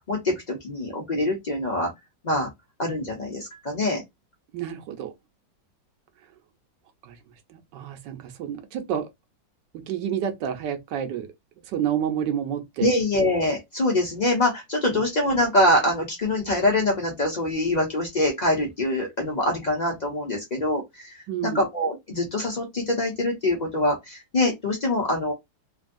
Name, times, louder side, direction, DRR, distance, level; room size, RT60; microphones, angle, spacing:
voice 1, 0.1-1.9 2.2-2.5 2.8-4.0 12.8-21.1 21.4-25.3, left 1 dB, 80° left, 0.4 m, -24 dB
voice 2, 4.5-5.1 7.0-7.2 7.5-9.1 9.9-11.3 11.7-12.9 14.9-15.0 21.3-21.6, right 9 dB, 70° right, 1.3 m, -29 dB
3.1 x 2.7 x 2.5 m
omnidirectional pair, 2.1 m